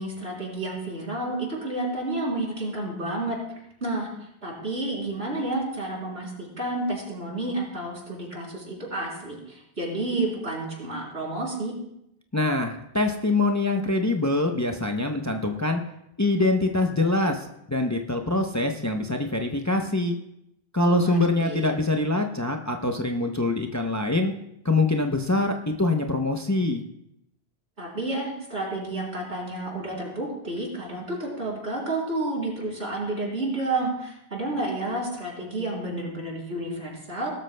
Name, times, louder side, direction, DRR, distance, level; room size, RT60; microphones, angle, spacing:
voice 1, 0.0-3.4 3.8-11.7 20.9-21.6 27.8-37.3, right 2 dB, 80° right, -3 dB, 3.7 m, -30 dB
voice 2, 12.3-15.8 16.2-20.2 20.7-24.3 24.6-26.8, left 2 dB, 20° left, 3 dB, 0.6 m, -24 dB
18.5 x 13.0 x 2.2 m, 0.79 s
omnidirectional pair, 1.1 m